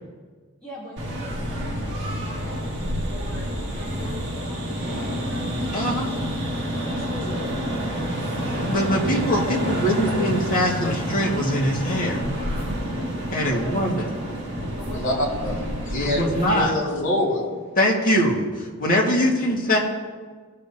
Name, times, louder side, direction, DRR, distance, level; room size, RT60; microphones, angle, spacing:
voice 1, 0.6-5.3 6.1-6.2 6.8-8.2 9.3-10.1 13.4-14.1 14.7-15.2 19.6-19.8, left 1 dB, 5° left, -12 dB, 3.1 m, -39 dB
sound 1, 1.0-16.6, equal, 55° right, 2.0 m, -28 dB
voice 2, 5.7-6.2 8.7-12.3 13.3-14.1 16.0-16.7 17.8-19.8, equal, 40° left, -2 dB, 1.9 m, -22 dB
voice 3, 14.9-16.2 16.5-17.4, left 1 dB, 60° left, -3 dB, 2.6 m, -25 dB
19.5 x 6.8 x 2.8 m, 1.5 s
head